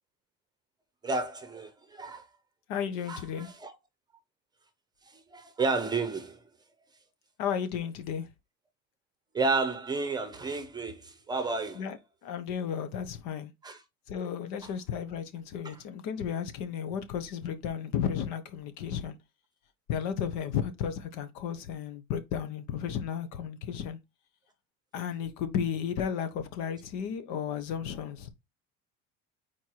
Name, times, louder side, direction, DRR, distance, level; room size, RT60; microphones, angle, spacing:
voice 1, 1.0-2.3 3.1-3.7 5.3-6.4 9.3-11.8 13.6-13.8 15.6-15.7, right 3 dB, 15° right, 0.8 m, -31 dB
voice 2, 2.7-3.5 7.4-8.3 11.7-12.0 12.2-13.5 14.1-19.2 19.9-24.0 24.9-28.3, left 8 dB, 70° left, 1.1 m, -33 dB
4.5 x 4.5 x 4.7 m
cardioid pair, 155°, 29 cm